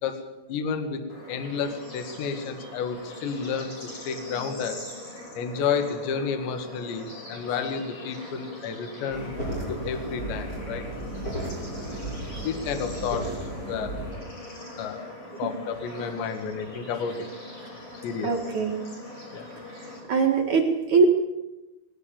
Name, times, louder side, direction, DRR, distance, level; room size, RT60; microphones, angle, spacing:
voice 1, 0.0-1.0 1.3-4.8 5.4-9.3 9.7-10.8 11.4-11.5 12.4-13.3 13.7-13.9 14.8-15.1 15.4-17.3 18.0-18.4 19.3-19.5, left 6 dB, 65° left, 7 dB, 3.8 m, -31 dB
Bird / Insect / Frog, 1.1-20.0, left 2 dB, 35° left, 6.0 m, -42 dB
sound 1, 9.1-14.1, right 1 dB, 15° left, 7.4 m, -34 dB
voice 2, 18.2-18.8 20.1-21.1, right 5 dB, 55° right, 1 dB, 2.3 m, -22 dB
20.5 x 20.0 x 7.2 m, 1.0 s
omnidirectional pair, 5.9 m